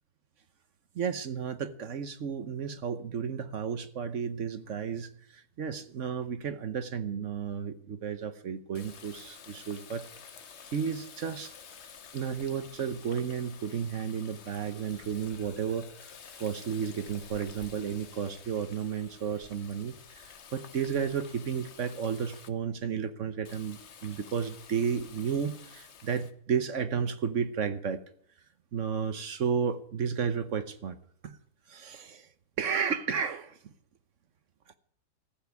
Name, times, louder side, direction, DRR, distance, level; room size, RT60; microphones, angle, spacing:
voice 1, 0.9-10.0 10.7-11.5 12.1-28.0 28.7-31.0 31.2-31.4 31.7-32.3 32.6-33.7 34.7-34.8, right 7 dB, 55° right, 11 dB, 1.1 m, -33 dB
Water tap faucet, 8.7-22.5 23.4-26.3, left 7 dB, 50° left, 1.1 m, -50 dB
14.5 x 7.3 x 9.5 m, 0.64 s
omnidirectional pair, 1.7 m